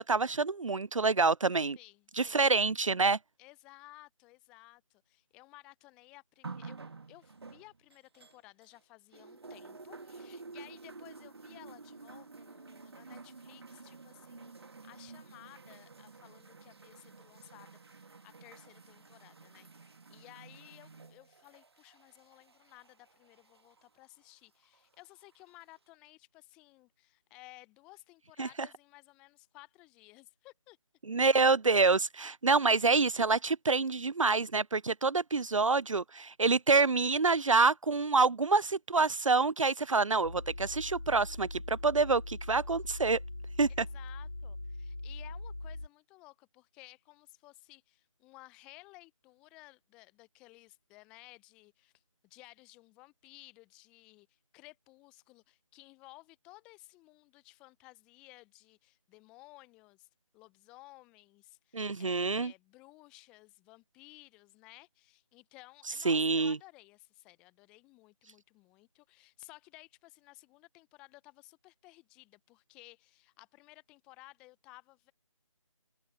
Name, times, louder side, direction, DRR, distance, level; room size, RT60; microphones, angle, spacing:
voice 1, 0.0-1.8 2.2-3.2 28.4-28.5 31.1-43.2 43.6-43.7 61.7-62.5 66.0-66.6, right 4 dB, 70° right, 0.5 m, -27 dB
voice 2, 1.8-2.5 3.4-6.8 7.1-30.8 43.8-51.9 52.2-60.1 60.3-75.1, left 22 dB, 5° left, 0.7 m, -56 dB
sound 1, 6.4-8.8 9.1-23.8 24.7-24.8, right 4 dB, 50° right, 1.5 m, -50 dB
sound 2, 40.2-45.9, left 2 dB, 70° left, 3.3 m, -42 dB
figure-of-eight pair, 155°, 17 cm